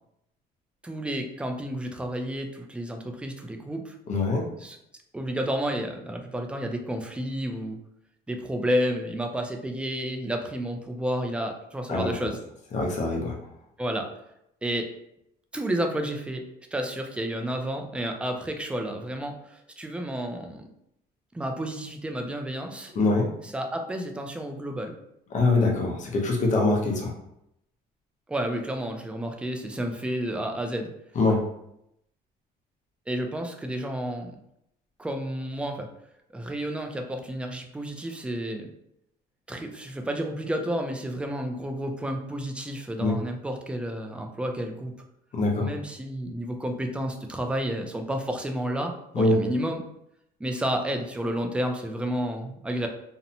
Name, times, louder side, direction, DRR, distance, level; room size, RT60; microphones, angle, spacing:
voice 1, 0.8-4.0 4.6-4.8 5.1-7.8 8.3-12.4 13.8-14.1 14.6-14.9 15.5-16.5 16.7-20.7 21.3-22.9 23.4-24.9 28.3-30.9 33.1-34.4 35.0-35.9 36.3-38.7 39.5-44.9 45.6-49.8 50.4-52.9, right 1 dB, 5° right, 4 dB, 0.3 m, -31 dB
voice 2, 4.1-4.4 11.9-12.2 12.7-13.3 23.0-23.3 25.3-27.1 31.2-31.4 43.0-43.2 45.3-45.7 49.1-49.4, left 2 dB, 45° left, 1 dB, 0.7 m, -23 dB
2.7 x 2.0 x 2.7 m, 0.78 s
cardioid pair, 110°, 17 cm